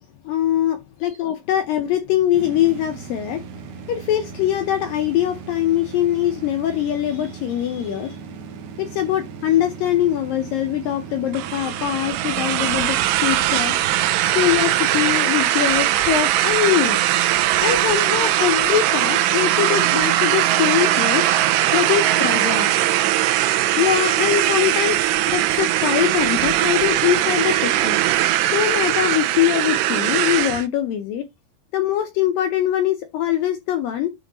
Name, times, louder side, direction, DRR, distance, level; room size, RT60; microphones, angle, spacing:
voice 1, 0.2-3.4 3.9-8.2 8.8-13.8 14.4-17.0 17.6-21.3 21.7-22.7 23.8-28.0 28.5-31.3 31.7-34.1, left 11 dB, 80° left, 2.0 m, -22 dB
sound 1, 2.3-15.2, right 6 dB, 65° right, 2.3 m, -37 dB
sound 2, 11.3-30.7, right 13 dB, 85° right, 2.8 m, -20 dB
9.9 x 3.5 x 3.9 m
omnidirectional pair, 4.9 m